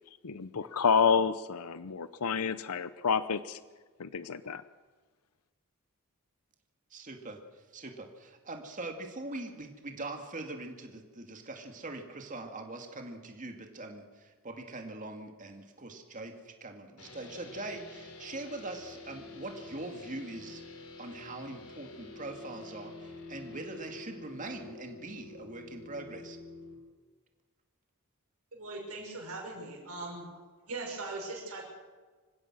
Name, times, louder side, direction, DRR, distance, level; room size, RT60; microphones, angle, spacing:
voice 1, 0.2-3.6 4.0-4.6, left 6 dB, 90° left, 14 dB, 0.7 m, -29 dB
voice 2, 6.9-26.4, right 2 dB, 35° right, 4 dB, 2.4 m, -42 dB
sound 1, 17.0-26.7, left 3 dB, 70° left, 4.4 m, -48 dB
voice 3, 28.5-30.3 30.6-31.6, right 2 dB, 90° right, -2 dB, 6.1 m, -40 dB
26.0 x 16.0 x 6.2 m, 1.4 s
head